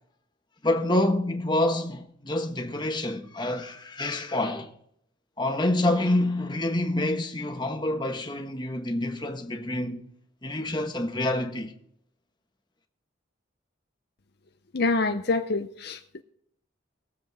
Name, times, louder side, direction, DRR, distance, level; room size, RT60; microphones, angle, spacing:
voice 1, 0.6-4.7 5.4-10.0 10.4-11.7, left 1 dB, 25° left, 1.2 m, -27 dB
voice 2, 14.7-16.2, left 3 dB, 55° left, 0.7 m, -26 dB
21.0 x 7.5 x 3.5 m
head